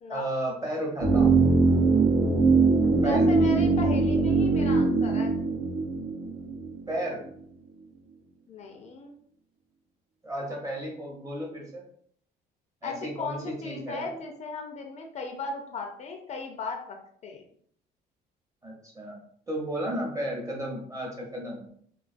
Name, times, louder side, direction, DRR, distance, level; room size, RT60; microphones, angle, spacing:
voice 1, 0.1-1.4 3.0-3.3 6.9-7.2 10.2-11.8 12.8-14.1 18.6-19.2 19.5-21.6, right 1 dB, 20° right, -1 dB, 0.8 m, -33 dB
sound 1, 1.0-7.0 7.3-7.4, right 3 dB, 70° right, 0.7 m, -22 dB
voice 2, 2.9-5.4 8.5-9.1 12.8-17.0 17.2-17.4, left 3 dB, 40° left, 3 dB, 0.4 m, -36 dB
2.3 x 2.3 x 2.5 m, 0.62 s
cardioid pair, 110°, 17 cm